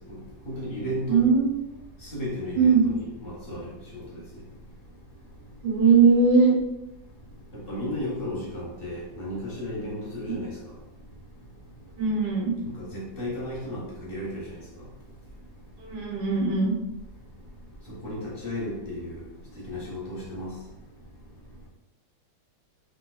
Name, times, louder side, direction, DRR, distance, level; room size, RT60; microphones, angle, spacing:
voice 1, 0.5-1.2 2.1-4.2 7.5-10.5 12.6-14.4 18.0-19.2 19.6-20.5, left 1 dB, 50° left, 0.7 m, -34 dB
voice 2, 1.1-1.6 2.6-2.9 5.6-6.6 12.0-12.5 15.9-16.7, right 5 dB, 75° right, 1.7 m, -20 dB
3.8 x 2.7 x 2.3 m
omnidirectional pair, 2.0 m